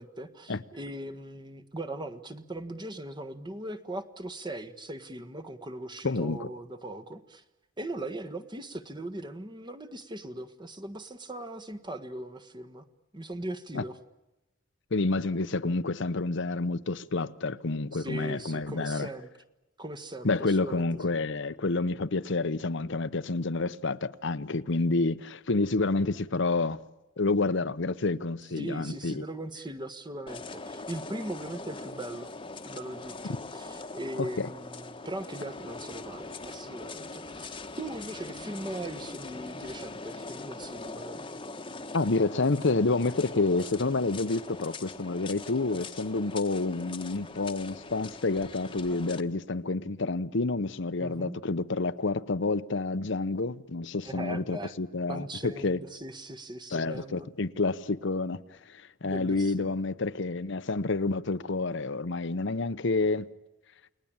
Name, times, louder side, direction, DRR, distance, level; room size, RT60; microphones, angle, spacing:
voice 1, 0.0-7.4 7.8-12.9 13.1-14.0 17.9-19.3 19.8-21.2 28.6-32.3 32.6-41.2 51.0-51.4 54.0-54.7 55.1-57.3 59.0-59.7, right 1 dB, 25° right, 1.5 m, -39 dB
voice 2, 6.0-6.5 13.7-13.8 14.9-19.1 20.2-26.8 27.2-29.2 34.2-34.5 41.9-55.8 56.7-63.3, left 3 dB, 65° left, 0.9 m, -29 dB
sound 1, 30.3-49.2, left 3 dB, 25° left, 1.3 m, -42 dB
29.5 x 20.0 x 8.9 m
head